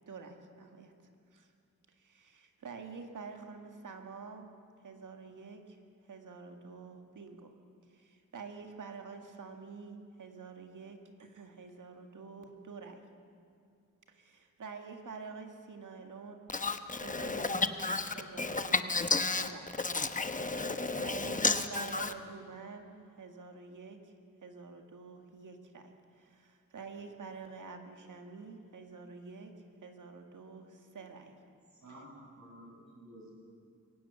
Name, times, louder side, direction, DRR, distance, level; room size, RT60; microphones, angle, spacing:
voice 1, 0.1-0.9 1.3-1.5 2.0-4.5 4.8-5.8 6.1-7.5 7.9-13.0 14.1-16.4 17.0-17.7 18.1-19.0 19.4-19.8 20.9-24.1 24.4-29.5 29.8-31.3 31.9-32.0, right 4 dB, 85° right, 4 dB, 2.0 m, -48 dB
voice 2, 17.1-18.0 18.4-18.6 18.9-19.5 19.8-22.1, left 3 dB, 25° left, 8 dB, 1.0 m, -32 dB
voice 3, 31.8-33.3, right 1 dB, 60° right, -2 dB, 6.5 m, -52 dB
22.5 x 18.0 x 7.1 m, 2.4 s
wide cardioid pair, 150°, 31 cm